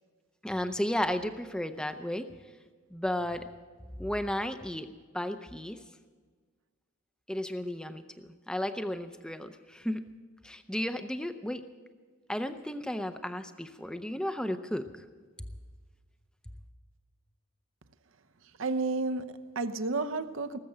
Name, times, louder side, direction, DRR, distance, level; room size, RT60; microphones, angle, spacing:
voice 1, 0.4-2.3 2.9-3.4 4.0-5.8 7.3-8.0 8.5-10.0 10.4-11.6 12.3-14.9, left 1 dB, 5° left, 0.5 m, -33 dB
voice 2, 18.6-20.6, right 3 dB, 65° right, 0.8 m, -31 dB
19.0 x 7.7 x 8.9 m
head